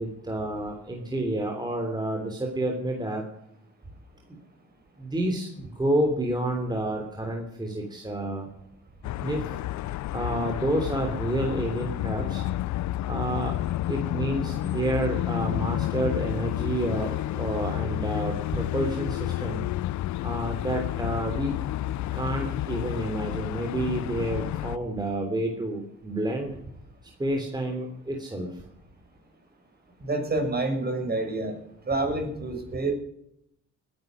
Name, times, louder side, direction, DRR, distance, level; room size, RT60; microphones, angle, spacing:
voice 1, 0.0-3.3 5.0-8.5 9.2-9.6 10.1-12.4 13.0-13.5 13.9-19.6 20.2-21.5 22.1-26.5 27.2-28.5, right 1 dB, 15° right, 2 dB, 3.3 m, -29 dB
sound 1, 9.0-24.8, left 15 dB, 70° left, 0.5 m, -30 dB
voice 2, 30.0-31.6 31.8-32.9, right 2 dB, 30° right, 4 dB, 6.2 m, -28 dB
20.5 x 10.5 x 6.3 m, 0.76 s
cardioid pair, 90°, 30 cm